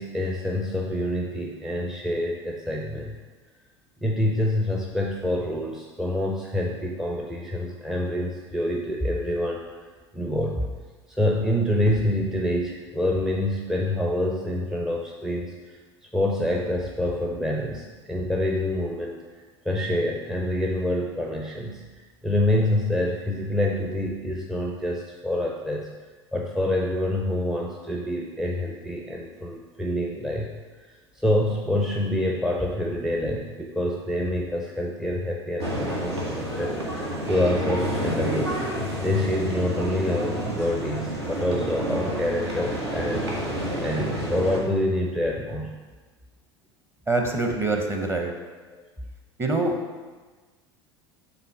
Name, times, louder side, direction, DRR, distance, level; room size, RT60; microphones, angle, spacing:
voice 1, 0.0-3.1 4.0-9.6 10.1-10.7 11.1-15.5 16.1-19.2 19.6-21.8 22.2-25.9 26.3-30.5 31.2-38.6 39.0-43.3 43.8-45.8 48.7-48.8, left 1 dB, 5° right, -1 dB, 0.5 m, -26 dB
sound 1, 35.6-44.6, equal, 75° right, 1.3 m, -29 dB
voice 2, 47.1-48.3 49.4-49.8, right 2 dB, 20° right, 3 dB, 0.9 m, -24 dB
6.7 x 3.6 x 5.2 m, 1.4 s
figure-of-eight pair, 75°, 14 cm